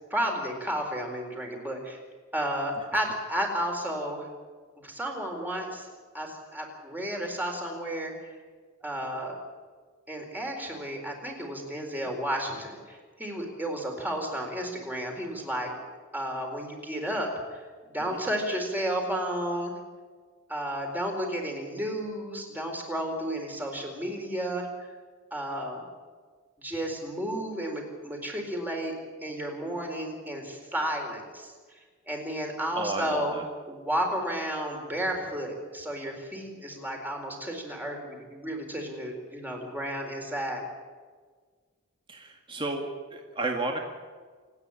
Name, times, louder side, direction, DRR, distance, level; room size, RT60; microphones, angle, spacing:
voice 1, 0.1-2.0 2.3-4.3 4.8-5.9 6.1-8.1 8.8-9.4 10.1-15.7 16.1-17.6 17.9-19.7 20.5-24.7 25.3-25.8 26.6-28.9 29.2-31.5 32.1-33.4 33.7-40.6, equal, 10° right, 1 dB, 4.3 m, -32 dB
voice 2, 32.7-33.4 42.1-43.8, right 2 dB, 25° right, 2 dB, 1.9 m, -32 dB
28.0 x 9.8 x 10.0 m, 1.5 s
head